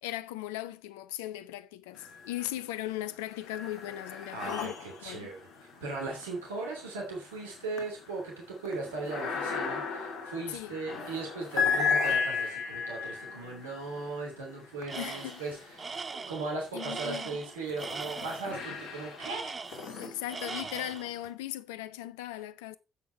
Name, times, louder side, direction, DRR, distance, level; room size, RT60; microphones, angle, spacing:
voice 1, 0.0-4.7 5.0-5.3 10.5-10.8 15.0-15.4 16.7-17.4 20.0-22.8, left 14 dB, 70° left, 0.7 m, -38 dB
sound 1, 2.0-2.6 3.0-16.2 16.8-21.3, left 5 dB, 55° left, 2.7 m, -36 dB
voice 2, 4.3-5.4 5.8-19.5, right 3 dB, 80° right, 2.9 m, -38 dB
Tools, 14.9-15.4 15.8-18.5 19.2-20.0 20.3-21.1, right 4 dB, 30° right, 0.6 m, -40 dB
10.0 x 8.2 x 4.5 m
figure-of-eight pair, 45°, 0 cm